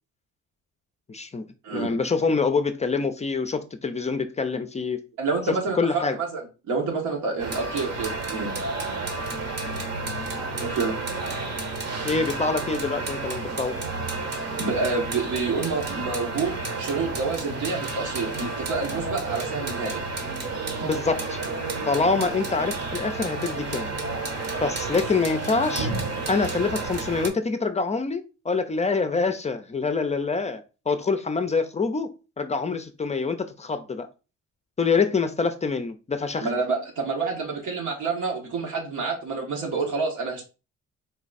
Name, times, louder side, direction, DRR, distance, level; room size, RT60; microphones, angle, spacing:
voice 1, 1.1-1.4 1.7-5.0 5.5-6.2 12.0-13.8 20.8-21.4 21.9-23.9 24.6-25.9 26.3-34.1 34.8-36.5, left 4 dB, 25° left, 0.5 m, -26 dB
voice 2, 5.2-8.5 10.6-10.9 14.5-20.0 36.3-40.4, right 4 dB, 80° right, 1.4 m, -28 dB
sound 1, 7.4-27.3, right 3 dB, 55° right, 1.1 m, -31 dB
4.0 x 2.3 x 4.0 m
cardioid pair, 90°, 30 cm